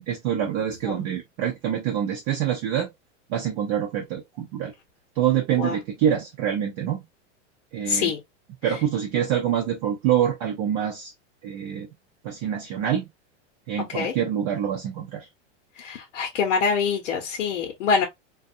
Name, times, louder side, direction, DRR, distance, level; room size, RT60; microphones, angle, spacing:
voice 1, 0.0-2.9 3.3-4.7 5.2-7.0 7.7-8.1 8.6-11.1 11.4-11.9 12.2-13.1 13.7-15.2, right 10 dB, 35° right, 0.6 m, -26 dB
voice 2, 7.9-8.2 13.9-14.1 15.8-18.0, left 5 dB, 75° left, 0.9 m, -25 dB
2.5 x 2.3 x 2.5 m
supercardioid pair, 160°, 36 cm